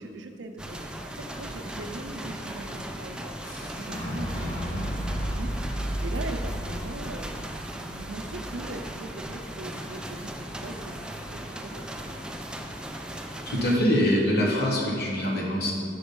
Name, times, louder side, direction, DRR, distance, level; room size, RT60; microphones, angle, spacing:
voice 1, 0.0-3.3 3.6-12.2, right 2 dB, 85° right, 6 dB, 0.6 m, -41 dB
sound 1, 0.6-13.8, right 1 dB, 5° right, 0.4 m, -38 dB
Fire / Explosion, 3.4-9.3, equal, 25° left, 1.5 m, -34 dB
voice 2, 13.5-15.7, equal, 60° left, -3 dB, 1.0 m, -24 dB
6.0 x 5.2 x 5.3 m, 2.3 s
head